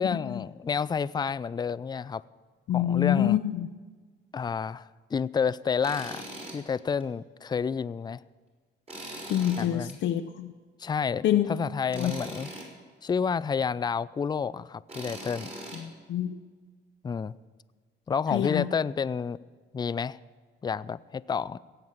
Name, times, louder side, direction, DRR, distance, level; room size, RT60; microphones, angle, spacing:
voice 1, 0.0-2.2 2.7-3.4 4.3-8.2 9.6-10.0 10.8-12.5 13.0-15.5 17.0-17.3 18.1-19.4 19.7-20.2 20.6-21.6, left 6 dB, 20° left, 18 dB, 0.3 m, -30 dB
voice 2, 2.7-3.7 9.3-10.5 11.2-11.5 11.9-12.1 15.8-16.3 18.3-18.7, left 11 dB, 70° left, 6 dB, 0.6 m, -26 dB
Tools, 5.8-6.6 7.0-7.1 8.9-9.9 11.9-12.7 14.9-15.8, right 1 dB, 30° right, 4.8 m, -40 dB
17.0 x 7.9 x 7.3 m, 1.4 s
cardioid pair, 90°, 20 cm